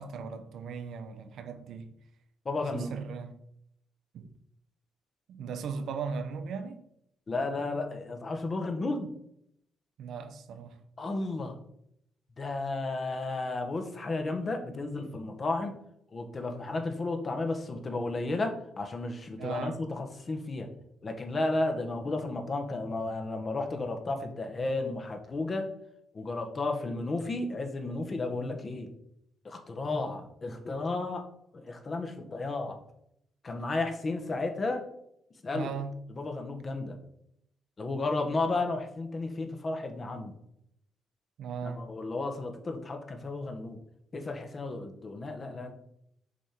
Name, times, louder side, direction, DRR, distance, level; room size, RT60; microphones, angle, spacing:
voice 1, 0.0-1.9 2.7-3.3 4.1-4.3 5.3-6.8 10.0-10.8 19.4-19.8 35.5-35.9 41.4-41.9, right 5 dB, 70° right, 0.7 m, -38 dB
voice 2, 2.4-3.0 7.3-9.1 11.0-11.6 12.4-15.8 16.1-20.7 21.0-25.7 26.1-28.9 29.4-31.3 31.5-32.8 33.4-34.8 35.4-35.7 36.1-37.0 37.8-40.4 41.6-43.8 44.1-45.7, left 2 dB, 35° left, 1.0 m, -33 dB
6.4 x 3.6 x 4.3 m
cardioid pair, 90°, 0 cm